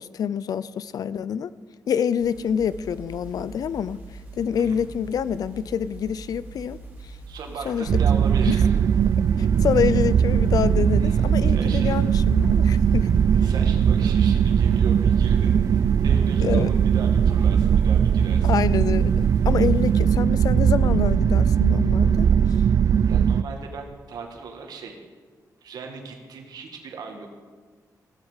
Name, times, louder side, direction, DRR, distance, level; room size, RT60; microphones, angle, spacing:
voice 1, 0.0-1.5 1.9-4.0 4.4-6.8 7.6-7.9 8.5-8.6 9.4-13.1 13.4-13.5 16.4-16.7 18.4-22.3, left 8 dB, 70° left, 17 dB, 0.5 m, -26 dB
sound 1, 2.2-20.2, right 2 dB, 25° right, 4.0 m, -42 dB
voice 2, 7.3-8.8 11.0-12.0 13.4-18.5 23.1-25.0 25.6-27.3, right 4 dB, 80° right, 2 dB, 1.9 m, -38 dB
sound 2, 7.9-23.4, right 8 dB, 55° right, 0.4 m, -19 dB
15.0 x 8.0 x 7.3 m, 1.4 s
wide cardioid pair, 140°, 7 cm